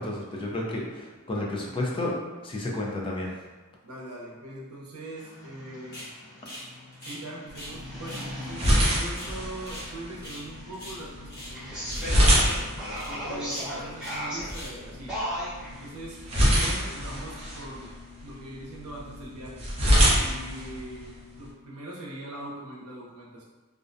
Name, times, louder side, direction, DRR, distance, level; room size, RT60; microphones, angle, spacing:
voice 1, 0.0-2.1 2.4-3.3, left 1 dB, 25° left, -2 dB, 0.4 m, -31 dB
voice 2, 3.8-6.1 7.0-12.5 13.1-15.2 15.7-17.9 18.2-19.7 20.1-23.4, right 1 dB, 90° right, -4 dB, 0.6 m, -41 dB
sound 1, 5.2-15.9, equal, 5° right, 0.9 m, -38 dB
sound 2, 5.9-6.1 6.4-7.8 8.0-8.3 8.6-9.9 10.2-10.5 10.7-11.5 11.9-12.1 12.4-12.6 12.9-13.1 13.4-14.2 14.5-14.8, equal, 50° left, 0.9 m, -42 dB
sound 3, 7.5-21.5, equal, 30° right, 0.5 m, -27 dB
2.4 x 2.1 x 2.5 m, 1.2 s
head